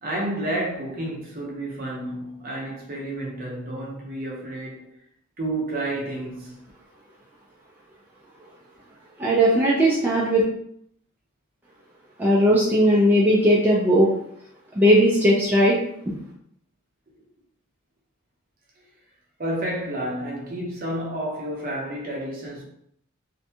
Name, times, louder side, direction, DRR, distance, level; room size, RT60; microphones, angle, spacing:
voice 1, 0.0-4.9 5.4-6.6 18.8-18.9 19.4-22.6, right 1 dB, 40° right, 0.7 m, -30 dB
voice 2, 9.2-10.4 12.2-14.1 14.7-15.8, equal, 10° right, 0.4 m, -18 dB
2.6 x 2.2 x 2.7 m
head